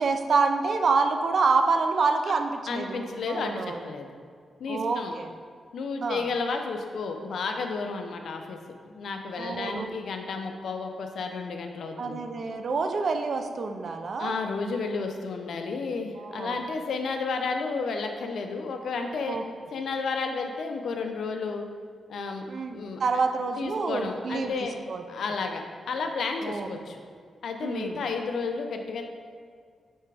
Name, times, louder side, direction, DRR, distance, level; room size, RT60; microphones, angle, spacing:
voice 1, 0.0-3.8 4.7-5.3 6.0-6.3 9.4-9.9 12.0-14.4 16.2-16.6 19.3-19.4 22.5-24.5 24.9-25.0 26.4-26.7 27.6-28.0, right 4 dB, 55° right, 6 dB, 0.5 m, -27 dB
voice 2, 2.7-4.1 4.6-5.1 5.7-8.6 8.9-12.2 14.2-19.4 19.7-21.6 22.1-22.5 22.7-23.0 23.6-24.7 25.1-27.0 27.4-29.0, left 4 dB, 75° left, 4 dB, 0.6 m, -32 dB
8.6 x 3.3 x 3.3 m, 2.1 s
cardioid pair, 105°, 0 cm